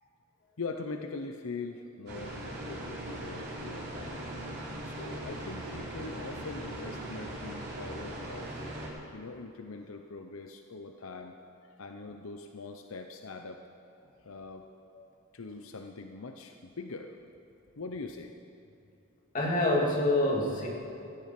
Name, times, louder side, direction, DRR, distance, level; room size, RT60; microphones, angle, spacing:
voice 1, 0.6-4.2 4.8-8.6 9.1-11.3 11.6-13.6 14.2-14.7 15.3-17.2 17.8-18.3, left 3 dB, 85° left, 5 dB, 0.8 m, -42 dB
sound 1, 2.1-8.9, right 1 dB, 50° right, 3.7 m, -40 dB
voice 2, 19.3-20.7, left 1 dB, 40° left, -3 dB, 2.8 m, -26 dB
17.0 x 13.0 x 6.0 m, 2.8 s
head